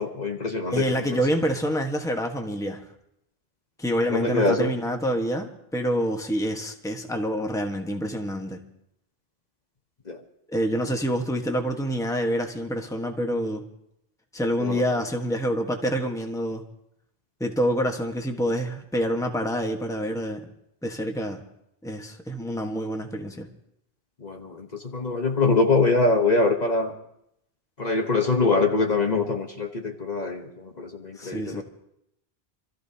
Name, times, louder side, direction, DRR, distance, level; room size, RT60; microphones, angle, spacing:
voice 1, 0.0-0.8 1.1-1.2 4.1-4.7 10.1-10.2 14.6-14.8 24.2-26.9 27.8-31.6, left 3 dB, 45° left, 3 dB, 1.2 m, -24 dB
voice 2, 0.7-2.8 3.8-8.6 10.5-13.6 14.3-16.6 17.4-20.5 20.8-21.4 21.8-23.5 31.2-31.6, equal, 5° left, 3 dB, 1.2 m, -27 dB
27.5 x 14.0 x 2.8 m, 0.78 s
omnidirectional pair, 1.0 m